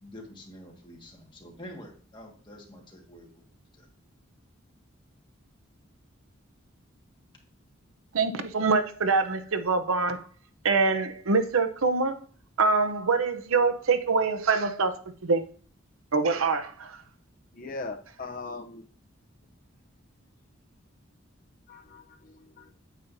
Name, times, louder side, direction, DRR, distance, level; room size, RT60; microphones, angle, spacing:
voice 1, 0.0-3.4 3.8-3.9, equal, 20° left, 1.7 m, -47 dB
voice 2, 8.1-10.2 10.6-12.2 12.6-14.9 15.2-15.4 16.1-17.0, right 4 dB, 85° right, 0.7 m, -24 dB
voice 3, 17.5-18.9 21.7-22.7, left 3 dB, 40° left, 0.7 m, -40 dB
9.1 x 7.4 x 2.7 m
head